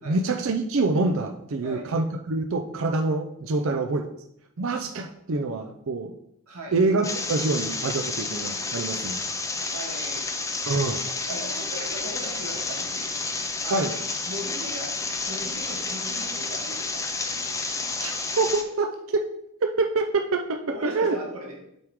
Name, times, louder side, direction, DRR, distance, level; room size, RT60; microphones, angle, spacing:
voice 1, 0.1-4.0 4.6-6.1 6.7-9.2 10.7-11.0 13.7-13.9 18.0-19.3 19.6-21.2, right 3 dB, 65° right, 4 dB, 0.5 m, -26 dB
voice 2, 6.5-6.8 9.7-10.3 11.1-13.1 13.6-13.8 14.3-14.9 15.3-17.1 20.7-21.6, right 1 dB, 85° right, -2 dB, 2.3 m, -38 dB
sound 1, 7.0-18.6, left 3 dB, 15° left, 0.5 m, -30 dB
7.9 x 4.8 x 3.6 m, 0.75 s
head